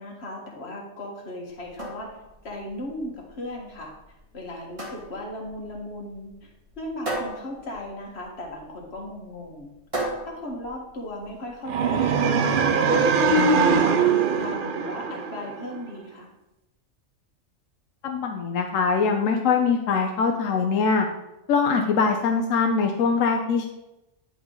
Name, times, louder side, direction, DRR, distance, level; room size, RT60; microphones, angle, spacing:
voice 1, 0.0-2.2 2.4-3.9 4.3-6.5 6.8-9.7 10.3-13.0 13.4-16.3, left 1 dB, 55° left, -1 dB, 1.8 m, -37 dB
sound 1, 1.5-11.5, right 1 dB, 25° right, 1.8 m, -37 dB
sound 2, 11.7-15.8, right 5 dB, 55° right, 0.7 m, -21 dB
voice 2, 18.0-21.1 21.5-23.7, left 5 dB, 85° left, 3 dB, 1.1 m, -22 dB
10.0 x 5.0 x 3.9 m, 0.93 s
omnidirectional pair, 1.3 m